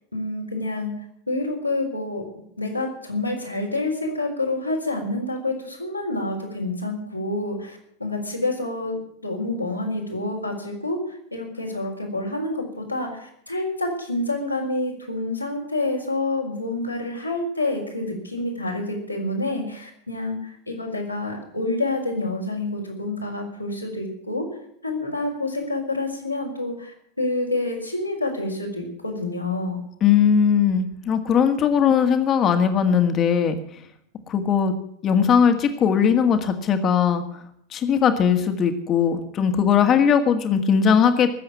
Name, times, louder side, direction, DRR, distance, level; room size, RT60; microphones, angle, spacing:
voice 1, 0.1-0.9 1.3-2.2 2.6-24.5 24.8-29.8, left 2 dB, 90° left, -2 dB, 4.2 m, -28 dB
voice 2, 30.0-33.6 34.3-34.7 35.0-37.2 37.7-41.3, left 7 dB, 30° left, 7 dB, 1.8 m, -19 dB
18.5 x 7.7 x 8.6 m, 0.71 s
figure-of-eight pair, 90°, 0 cm